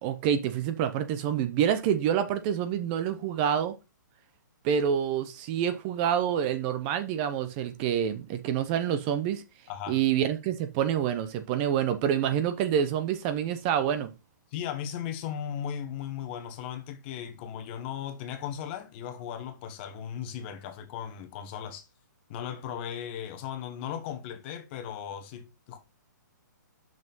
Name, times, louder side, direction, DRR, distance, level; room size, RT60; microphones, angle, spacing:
voice 1, 0.0-3.7 4.6-9.4 9.9-14.1, right 9 dB, 30° right, 0.8 m, -27 dB
voice 2, 9.7-10.0 14.5-21.9 22.3-25.8, left 9 dB, 35° left, 1.3 m, -37 dB
6.0 x 5.2 x 5.4 m
hypercardioid pair, 150°, 10 cm